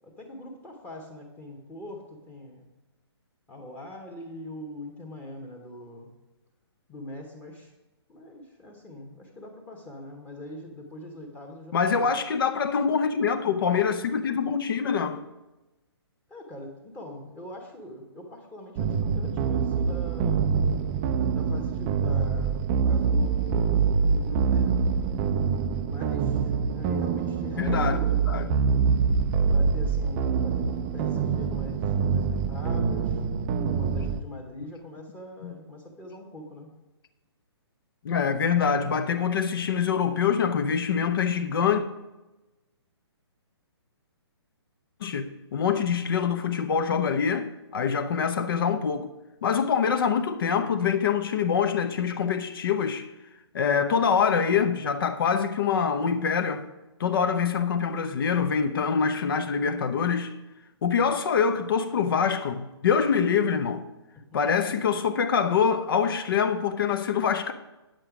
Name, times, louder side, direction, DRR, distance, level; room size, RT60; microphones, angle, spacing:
voice 1, 0.0-2.7 3.5-6.1 6.9-7.7 8.1-12.1 16.3-20.5 21.3-25.2 25.9-28.3 29.4-33.2 33.6-36.7 64.3-64.4, left 1 dB, 10° left, 1.1 m, -42 dB
voice 2, 11.7-15.2 27.6-28.0 28.3-28.5 35.4-35.5 38.0-41.8 45.0-45.3 45.5-49.1 49.4-53.1 53.5-56.6 57.0-60.3 60.8-63.9 64.3-67.5, left 6 dB, 55° left, 0.8 m, -25 dB
sound 1, 18.8-34.2, right 5 dB, 20° right, 0.4 m, -25 dB
9.0 x 7.7 x 4.9 m
hypercardioid pair, 155°, 14 cm